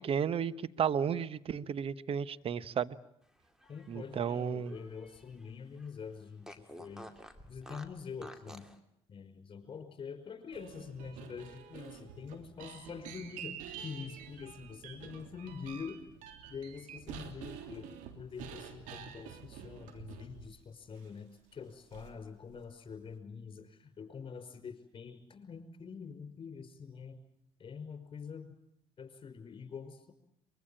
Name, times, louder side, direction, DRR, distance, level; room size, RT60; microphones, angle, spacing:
voice 1, 0.0-3.0 3.9-4.7, right 7 dB, 45° right, 16 dB, 1.1 m, -33 dB
Fart, 3.4-5.5 5.8-5.9 6.4-8.8, equal, 5° right, 2.7 m, -51 dB
voice 2, 3.6-7.1 7.5-8.7 9.1-16.0 16.5-17.9 18.1-27.2 27.6-28.6 29.0-30.1, left 6 dB, 40° left, 9 dB, 5.6 m, -45 dB
sound 1, 10.5-20.6 21.0-21.1 21.9-22.2 22.5-23.0, right 8 dB, 70° right, 3.0 m, -48 dB
24.0 x 22.5 x 8.8 m, 0.73 s
hypercardioid pair, 70°, 13 cm